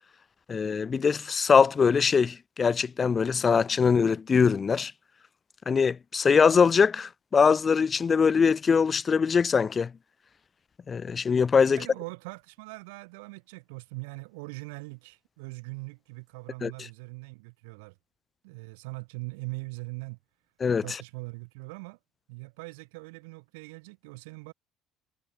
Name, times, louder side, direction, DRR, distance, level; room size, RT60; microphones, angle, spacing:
voice 1, 0.5-4.9 5.7-9.9 10.9-11.8 16.6-16.7 20.6-20.8, left 6 dB, 35° left, 0.6 m, -22 dB
voice 2, 11.7-18.0 18.4-20.2 20.8-22.0 22.3-24.5, right 28 dB, 80° right, 1.3 m, -41 dB
hypercardioid pair, 70°, 0 cm